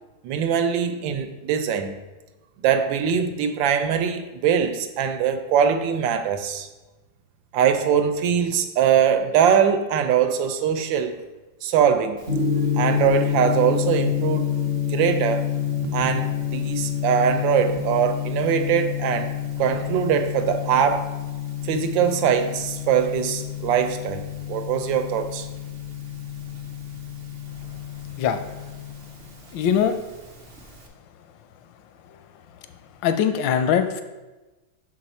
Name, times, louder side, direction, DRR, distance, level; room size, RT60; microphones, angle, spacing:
voice 1, 0.2-2.0 2.6-6.7 7.5-11.2 11.6-12.2 12.8-15.5 15.9-19.3 19.6-21.1 21.6-24.2 24.5-25.5, right 8 dB, 90° right, 8 dB, 1.3 m, -22 dB
Gong, 12.2-30.8, left 8 dB, 55° right, 0.6 m, -28 dB
voice 2, 29.5-30.0 33.0-34.0, left 8 dB, 85° left, 8 dB, 1.3 m, -21 dB
6.3 x 4.7 x 4.1 m, 1.1 s
omnidirectional pair, 2.0 m